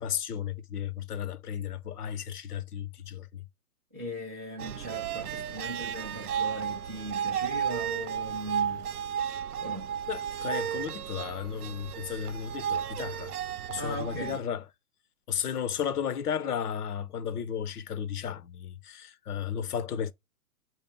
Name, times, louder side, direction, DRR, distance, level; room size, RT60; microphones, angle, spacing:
voice 1, 0.0-3.4 10.1-13.3 13.7-14.6 15.3-20.1, left 8 dB, 80° left, 0.8 m, -34 dB
voice 2, 3.9-8.9 9.6-9.9 13.6-14.4, equal, 15° right, 0.3 m, -39 dB
sound 1, 4.6-14.4, right 9 dB, 75° right, 0.6 m, -33 dB
3.2 x 2.8 x 3.6 m
hypercardioid pair, 140°, 45 cm